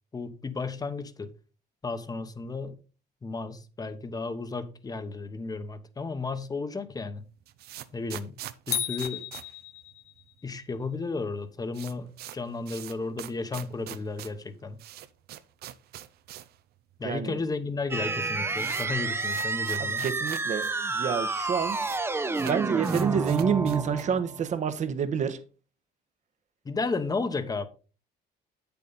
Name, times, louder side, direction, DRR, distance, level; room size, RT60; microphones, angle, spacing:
voice 1, 0.1-1.3 1.8-2.8 3.2-7.2 7.9-8.4 8.7-9.2 10.4-14.8 17.0-20.1 26.6-27.7, left 3 dB, 20° left, 1.0 m, -33 dB
sound 1, 7.2-10.4 10.7-10.8 11.0-11.1 11.4-16.6 16.9-17.0 17.7-17.8 18.0-20.7 21.0-21.1 21.3-22.0 22.3-24.2, right 13 dB, 70° right, 0.7 m, -43 dB
sound 2, 8.7-10.3, left 10 dB, 75° left, 1.0 m, -33 dB
voice 2, 17.0-17.4 19.8-21.8 22.4-25.4, right 7 dB, 45° right, 1.1 m, -28 dB
sound 3, 17.9-24.4, right 3 dB, 15° right, 0.6 m, -30 dB
8.4 x 7.0 x 4.0 m
cardioid pair, 110°, 17 cm